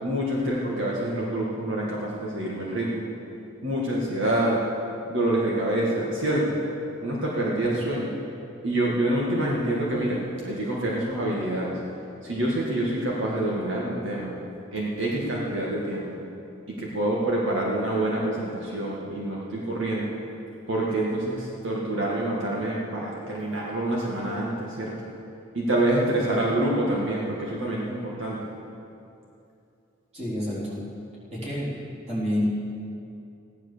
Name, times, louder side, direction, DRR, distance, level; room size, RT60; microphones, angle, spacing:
voice 1, 0.0-3.1 3.6-4.6 5.1-6.6 7.0-8.1 8.6-11.7 12.2-14.3 14.7-16.1 16.7-20.1 20.7-24.9 25.5-28.4, right 1 dB, 70° right, -4 dB, 2.1 m, -26 dB
voice 2, 30.1-30.8 31.3-31.7 32.1-32.4, equal, 30° right, -7 dB, 4.0 m, -29 dB
15.5 x 10.5 x 6.9 m, 2.7 s
head